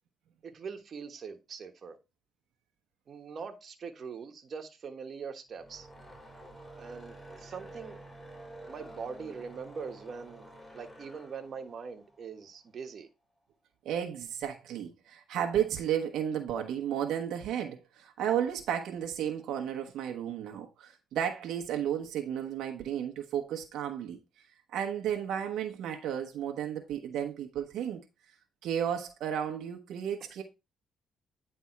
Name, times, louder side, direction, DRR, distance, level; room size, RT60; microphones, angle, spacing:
voice 1, 0.4-2.0 3.1-5.9 6.8-8.0 8.7-13.1, right 5 dB, 50° right, 1.3 m, -42 dB
sound 1, 5.5-12.8, right 1 dB, 5° left, 3.6 m, -50 dB
voice 2, 13.8-24.2 24.7-28.0 28.6-30.4, right 9 dB, 85° right, 1.0 m, -33 dB
9.6 x 3.5 x 4.5 m
cardioid pair, 90°, 0 cm